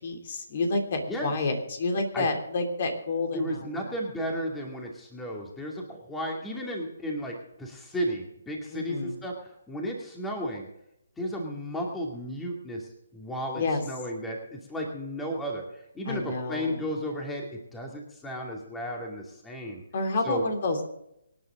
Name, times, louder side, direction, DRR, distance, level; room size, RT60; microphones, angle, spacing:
voice 1, 0.0-3.9 8.7-9.2 13.5-13.8 16.0-16.9 19.9-20.9, left 3 dB, 45° left, 4 dB, 3.0 m, -29 dB
voice 2, 3.3-9.3 9.7-10.7 11.2-12.8 13.1-15.6 15.9-19.8 20.2-20.4, equal, 10° left, 0 dB, 2.5 m, -33 dB
25.5 x 9.7 x 3.8 m, 0.80 s
figure-of-eight pair, 150°, 0 cm